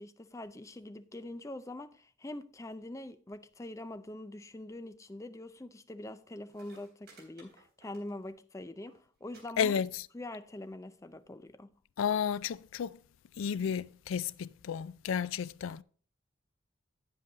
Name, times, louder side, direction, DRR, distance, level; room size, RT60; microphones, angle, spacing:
voice 1, 0.0-9.8 10.1-11.7, left 1 dB, 15° left, 0.4 m, -44 dB
sound 1, 6.2-6.3 6.5-8.4 8.7-9.0 9.3-9.4 9.7-10.2 11.0-11.1, right 3 dB, 55° right, 3.5 m, -59 dB
voice 2, 9.6-9.9 12.0-13.0 13.4-15.8, left 7 dB, 85° left, 0.4 m, -32 dB
9.1 x 7.7 x 3.9 m
head